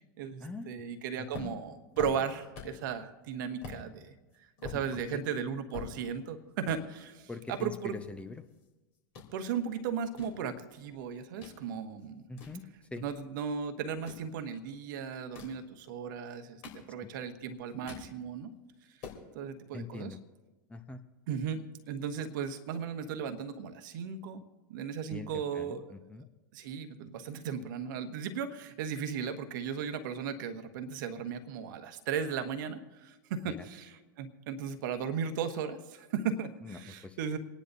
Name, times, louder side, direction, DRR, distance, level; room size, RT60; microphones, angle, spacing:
voice 1, 0.0-4.1 4.6-8.0 9.3-12.2 13.0-18.5 19.3-20.1 21.3-24.4 24.7-25.9 26.5-37.4, right 7 dB, 60° right, 7 dB, 1.2 m, -36 dB
voice 2, 1.2-1.5 4.9-5.2 7.3-8.4 12.3-12.6 12.9-13.0 17.0-17.1 19.7-20.2 20.7-21.0 25.1-26.3 33.4-33.7 36.6-37.2, left 3 dB, 10° left, 7 dB, 0.8 m, -43 dB
sound 1, 1.3-2.9 3.2-3.3 3.6-3.8 4.3-6.3 6.6-6.8 7.5-8.7 8.9-9.3 9.9-11.6 12.0-13.3 13.9-14.3 15.1-15.6 16.3-17.2 17.6-18.1 18.5-18.6 18.8-19.2, left 6 dB, 55° left, 3.2 m, -46 dB
29.0 x 10.0 x 2.7 m, 1.1 s
hypercardioid pair, 90°, 11 cm